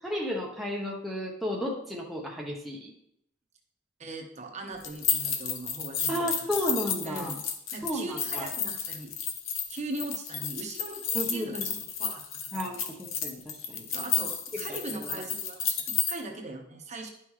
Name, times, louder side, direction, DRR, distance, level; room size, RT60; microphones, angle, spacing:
voice 1, 0.0-2.9 6.1-7.3 7.8-8.5 11.1-11.7 12.5-13.8 14.9-15.1, equal, ahead, -2 dB, 0.9 m, -33 dB
voice 2, 4.0-6.7 7.0-7.4 7.7-9.1 9.7-11.7 12.0-12.8 13.9-17.1, right 2 dB, 35° right, 2 dB, 1.0 m, -40 dB
sound 1, 4.8-16.1, left 7 dB, 70° left, 0.9 m, -32 dB
11.0 x 5.6 x 3.2 m, 0.76 s
head